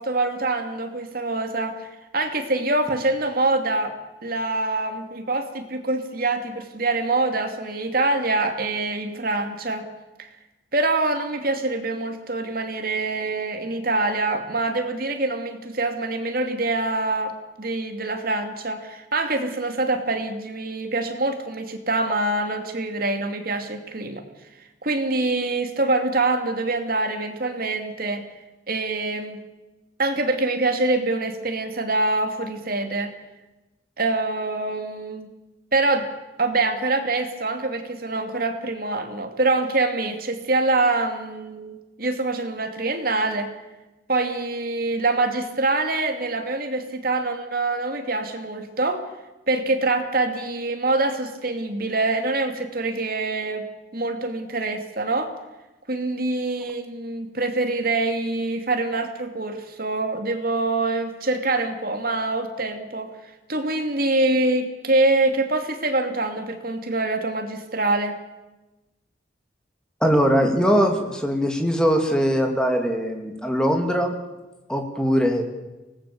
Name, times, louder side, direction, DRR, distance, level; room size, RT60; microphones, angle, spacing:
voice 1, 0.0-1.8 2.1-3.9 4.2-9.8 10.7-17.3 17.6-24.2 24.8-28.2 28.7-29.4 30.0-33.1 34.0-35.3 35.7-36.1 36.4-43.5 44.1-49.0 49.5-53.6 53.9-55.3 55.9-63.1 63.5-68.2, right 2 dB, 50° right, 6 dB, 2.7 m, -25 dB
voice 2, 70.0-74.1 74.7-75.5, equal, 5° left, 3 dB, 2.8 m, -21 dB
24.5 x 19.0 x 7.1 m, 1.1 s
head